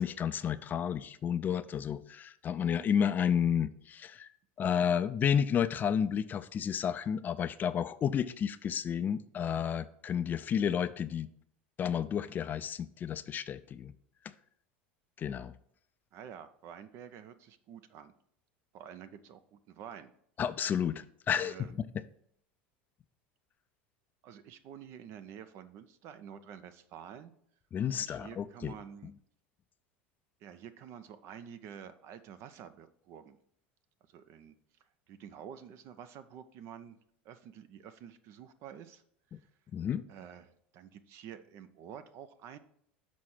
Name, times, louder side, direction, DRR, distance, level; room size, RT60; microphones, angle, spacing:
voice 1, 0.0-4.3 4.6-11.3 11.8-13.9 15.2-15.5 20.4-21.9 27.7-28.7 39.7-40.0, left 8 dB, 35° left, 14 dB, 0.4 m, -31 dB
voice 2, 16.1-18.1 18.7-20.1 21.4-21.7 24.2-27.3 27.9-29.1 30.4-33.4 34.1-34.5 35.1-37.0 37.2-39.0 39.3-39.4 40.1-42.6, right 8 dB, 55° right, 12 dB, 0.6 m, -49 dB
6.3 x 4.2 x 5.9 m, 0.68 s
hypercardioid pair, 85°, 6 cm